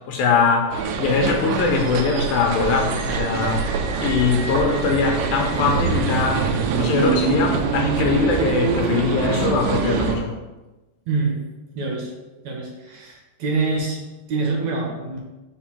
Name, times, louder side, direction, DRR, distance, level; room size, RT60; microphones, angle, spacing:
voice 1, 0.1-3.7 4.0-10.3, left 5 dB, 80° left, 1 dB, 2.5 m, -22 dB
sound 1, 0.7-10.2, right 6 dB, 75° right, 2.1 m, -24 dB
voice 2, 11.1-11.5 11.8-12.1 12.4-14.0 14.3-15.2, right 3 dB, 60° right, -1 dB, 2.1 m, -25 dB
5.4 x 5.1 x 5.9 m, 1.1 s
omnidirectional pair, 4.2 m